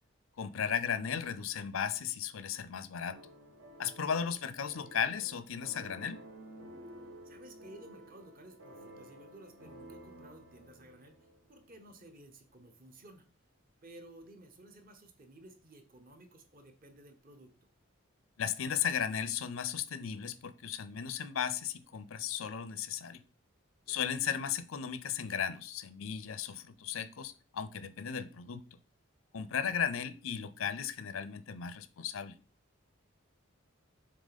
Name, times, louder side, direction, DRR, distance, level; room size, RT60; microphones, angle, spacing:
voice 1, 0.4-3.2 3.8-6.2 18.4-23.2 23.9-28.8 29.3-32.4, left 8 dB, 75° left, 0.5 m, -35 dB
sound 1, 3.1-12.1, right 1 dB, 65° right, 1.1 m, -53 dB
voice 2, 7.2-13.3 13.8-17.7 23.8-24.1 29.4-30.0, right 1 dB, 40° right, 0.9 m, -55 dB
7.3 x 3.4 x 4.1 m
head